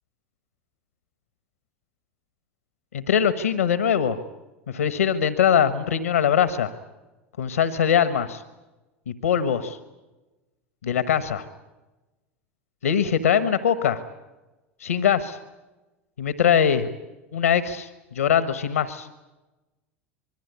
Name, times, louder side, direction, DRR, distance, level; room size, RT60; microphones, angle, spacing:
voice 1, 2.9-4.2 4.7-6.7 7.4-8.4 9.1-9.8 10.8-11.4 12.8-14.0 14.8-15.4 16.2-16.9 17.3-19.1, left 8 dB, 80° left, 12 dB, 1.3 m, -22 dB
25.5 x 22.5 x 8.3 m, 1.1 s
hypercardioid pair, 80°, 7 cm